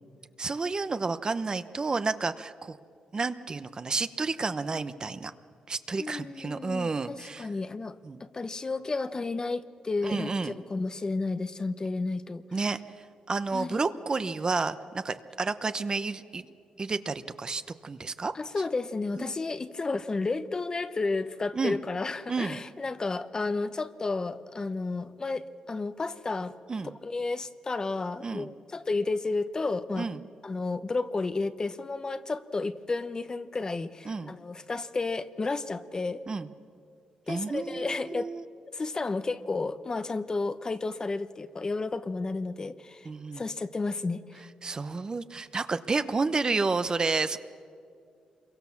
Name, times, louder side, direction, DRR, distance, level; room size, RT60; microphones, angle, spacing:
voice 1, 0.4-2.8 3.1-5.3 5.7-7.5 8.0-8.2 10.0-10.5 12.5-12.8 13.3-16.4 16.8-18.3 19.2-19.3 21.5-21.8 22.3-22.6 26.7-26.9 28.2-28.5 30.0-30.2 34.1-34.3 36.3-36.5 37.3-38.4 43.0-43.4 44.6-47.4, right 4 dB, 30° right, 11 dB, 0.9 m, -30 dB
voice 2, 6.0-12.4 13.5-13.8 18.3-26.5 27.0-30.1 30.4-36.2 37.3-38.3 38.7-43.1 43.4-44.4, left 3 dB, 30° left, 12 dB, 0.9 m, -32 dB
27.0 x 23.0 x 7.2 m, 2.3 s
cardioid pair, 100°, 2 cm